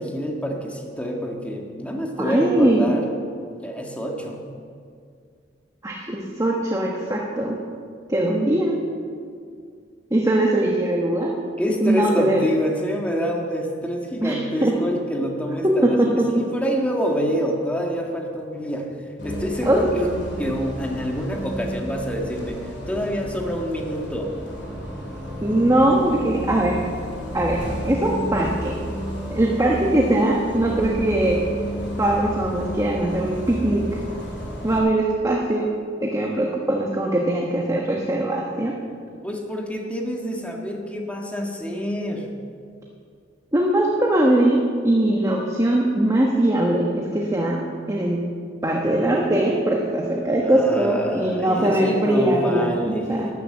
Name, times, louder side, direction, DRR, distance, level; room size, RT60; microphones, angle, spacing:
voice 1, 0.0-3.0 3.6-4.4 11.6-19.0 19.2-24.3 39.2-42.3 50.4-53.3, equal, 5° left, 1 dB, 1.7 m, -27 dB
voice 2, 2.2-2.8 5.8-7.6 8.1-8.8 10.1-11.3 11.8-12.5 14.2-14.4 14.6-14.7 15.6-16.3 19.6-19.9 25.4-26.8 27.3-28.7 29.3-31.4 32.0-34.0 34.6-35.7 36.0-38.8 43.5-48.2 48.6-52.7 53.1-53.3, right 1 dB, 20° right, -2 dB, 1.3 m, -21 dB
Bus, 19.2-34.8, equal, 70° left, 3.5 m, -32 dB
12.5 x 10.5 x 7.6 m, 2.2 s
head